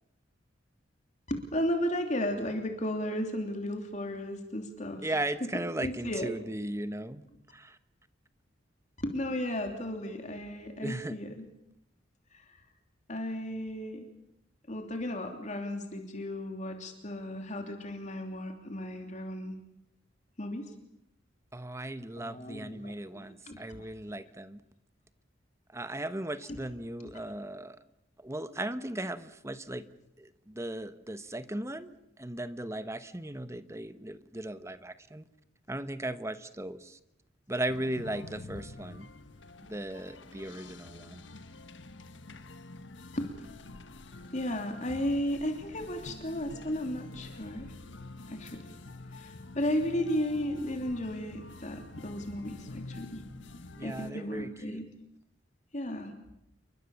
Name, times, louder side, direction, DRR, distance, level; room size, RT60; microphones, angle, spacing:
voice 1, 1.3-6.3 9.0-11.5 12.3-12.6 13.1-14.1 14.7-19.5 20.4-20.7 22.2-23.8 26.5-26.6 27.0-27.1 43.1-43.3 44.3-47.7 48.3-48.7 49.2-53.2 53.8-54.9 55.7-56.1, left 1 dB, 40° left, 4 dB, 3.2 m, -34 dB
voice 2, 5.0-7.2 7.5-7.8 10.8-11.2 21.5-24.6 25.7-27.8 28.2-29.9 30.2-35.2 35.7-37.0 37.5-39.1 39.6-41.2 53.8-54.8, right 1 dB, 15° right, 12 dB, 1.2 m, -37 dB
sound 1, 37.7-54.1, left 2 dB, 80° left, 1.5 m, -47 dB
29.0 x 23.0 x 7.2 m, 0.80 s
head